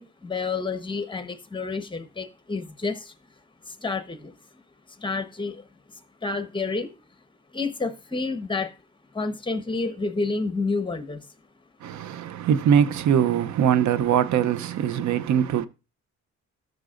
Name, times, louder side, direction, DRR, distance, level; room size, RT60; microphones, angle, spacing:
voice 1, 0.0-3.1 3.7-4.3 5.0-5.6 6.2-7.0 7.5-8.7 9.1-11.2, left 3 dB, 15° left, 1.1 m, -29 dB
voice 2, 11.8-15.7, right 8 dB, 70° right, 0.8 m, -22 dB
13.0 x 6.3 x 2.5 m
cardioid pair, 90°, 30 cm